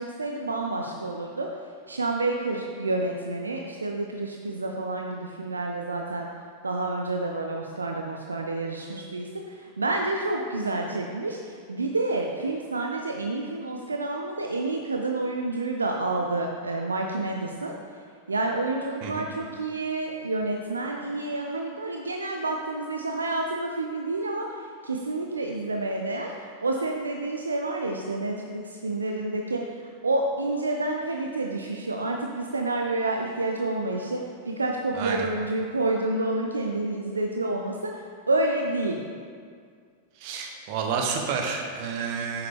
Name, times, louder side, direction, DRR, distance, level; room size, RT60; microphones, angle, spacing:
voice 1, 0.0-1.5 1.9-6.3 6.6-17.7 18.3-39.0, right 2 dB, 75° right, 2 dB, 0.5 m, -29 dB
voice 2, 34.9-35.3 40.2-42.5, right 5 dB, 45° right, 3 dB, 1.1 m, -30 dB
8.9 x 7.0 x 3.6 m, 2.1 s
figure-of-eight pair, 90°, 0 cm